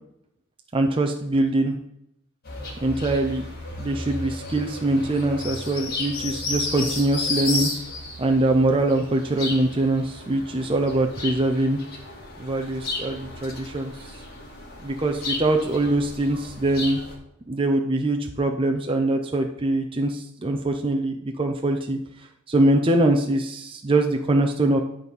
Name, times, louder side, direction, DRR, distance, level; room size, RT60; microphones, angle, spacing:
voice 1, 0.7-1.8 2.8-3.5 3.8-7.7 8.2-11.8 12.4-14.2 14.8-17.0 17.5-24.8, right 2 dB, 25° right, 3 dB, 0.5 m, -23 dB
sound 1, 2.4-17.1, left 3 dB, 45° left, 2.0 m, -33 dB
10.5 x 4.1 x 5.3 m, 0.78 s
head